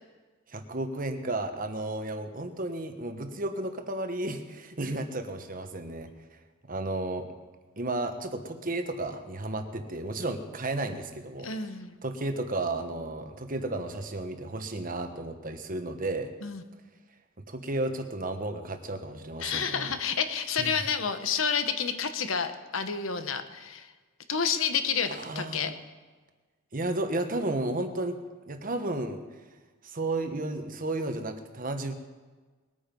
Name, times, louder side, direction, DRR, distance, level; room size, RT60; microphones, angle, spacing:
voice 1, 0.5-6.1 6.7-7.3 7.8-11.5 12.0-16.3 17.5-19.9 20.6-20.8 25.2-25.6 26.7-28.2 28.5-29.2 29.8-31.9, right 2 dB, 40° right, 7 dB, 1.2 m, -33 dB
voice 2, 11.4-12.0 16.4-16.6 19.4-23.9 24.3-25.7, left 6 dB, 80° left, 9 dB, 1.1 m, -29 dB
21.0 x 9.0 x 5.4 m, 1.4 s
head